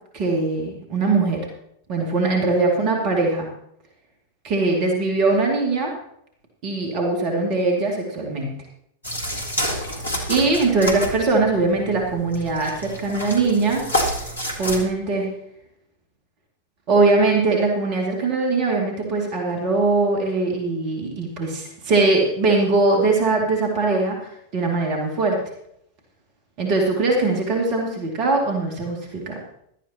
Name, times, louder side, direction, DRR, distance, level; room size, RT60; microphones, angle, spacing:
voice 1, 0.1-1.5 1.9-3.5 4.4-5.9 6.6-8.5 10.3-13.8 14.6-15.3 16.9-25.4 26.6-29.4, right 3 dB, 40° right, 0 dB, 2.5 m, -21 dB
sound 1, 9.0-14.8, equal, 75° left, 2.1 m, -28 dB
16.5 x 12.0 x 3.0 m, 0.74 s
figure-of-eight pair, 90°, 0 cm